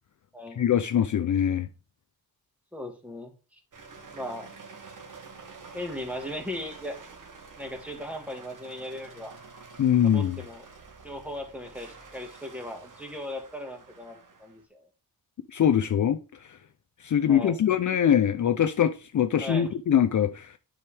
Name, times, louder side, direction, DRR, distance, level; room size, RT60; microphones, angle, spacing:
voice 1, 0.6-1.7 9.8-10.4 15.5-16.2 17.0-20.5, left 9 dB, 50° left, 0.5 m, -23 dB
voice 2, 2.7-3.6 4.1-4.5 5.7-7.0 7.6-9.3 10.0-10.6 11.0-14.9 17.3-17.6 19.4-19.7, left 1 dB, 5° right, 1.7 m, -37 dB
sound 1, 3.7-14.6, right 4 dB, 55° right, 1.4 m, -48 dB
9.6 x 5.0 x 3.4 m
wide cardioid pair, 120°, 38 cm